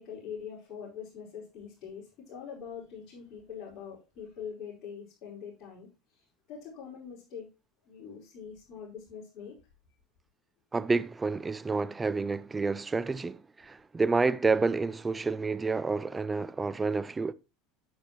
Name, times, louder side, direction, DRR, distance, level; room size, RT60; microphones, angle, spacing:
voice 1, 0.0-7.5 7.9-9.6, left 7 dB, 45° left, 4.9 m, -44 dB
voice 2, 10.7-17.3, right 4 dB, 20° right, 0.5 m, -29 dB
9.1 x 8.6 x 3.0 m
figure-of-eight pair, 75°, 0 cm